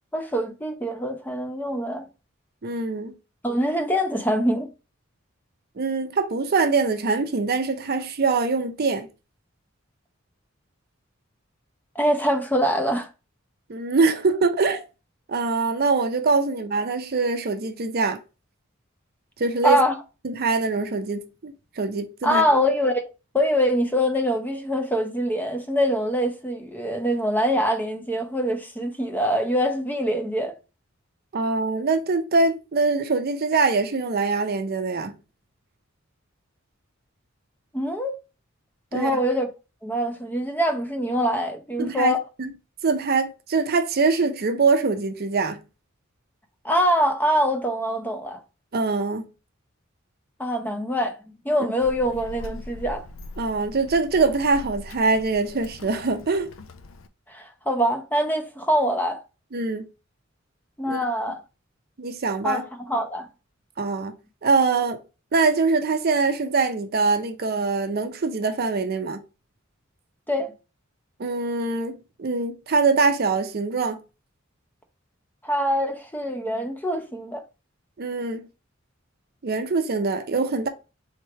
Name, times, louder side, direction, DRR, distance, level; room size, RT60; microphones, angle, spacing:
voice 1, 0.1-2.0 3.4-4.7 11.9-13.1 19.6-19.9 22.2-23.0 23.3-30.5 37.7-38.2 38.9-39.5 39.8-42.2 46.6-48.4 50.4-51.2 51.4-53.1 57.3-59.2 60.8-61.4 62.4-63.3 70.3-70.5 75.4-77.4, equal, 10° left, 0.6 m, -24 dB
voice 2, 2.6-3.1 5.8-9.1 13.7-14.8 15.3-18.2 19.4-19.8 20.2-22.4 31.3-35.2 38.9-39.2 41.8-42.5 42.8-45.6 48.7-49.3 53.4-56.5 59.5-59.9 60.9-61.0 62.0-62.6 63.8-64.1 64.4-65.0 65.3-69.2 71.2-74.0 78.0-78.5 79.4-80.7, right 4 dB, 50° right, 0.6 m, -23 dB
Child speech kid speaking, 51.8-57.1, left 2 dB, 75° left, 0.5 m, -41 dB
3.6 x 3.2 x 4.5 m
head